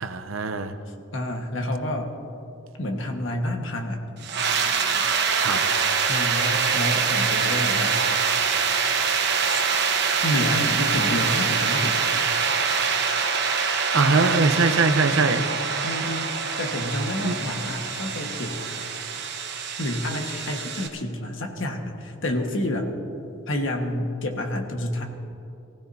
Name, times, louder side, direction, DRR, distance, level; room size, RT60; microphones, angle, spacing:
voice 1, 0.0-0.7 5.4-5.6 13.9-15.4 17.2-17.3, right 3 dB, 90° right, 8 dB, 0.8 m, -21 dB
voice 2, 0.9-2.1 2.8-4.0 6.1-7.9 9.5-9.6 10.2-12.0 14.1-14.3 15.8-18.6 19.8-22.9 23.5-25.0, left 1 dB, 70° left, 2 dB, 1.6 m, -29 dB
sound 1, 4.2-20.9, right 6 dB, 60° right, 1.2 m, -24 dB
24.0 x 16.0 x 2.8 m, 2.8 s
head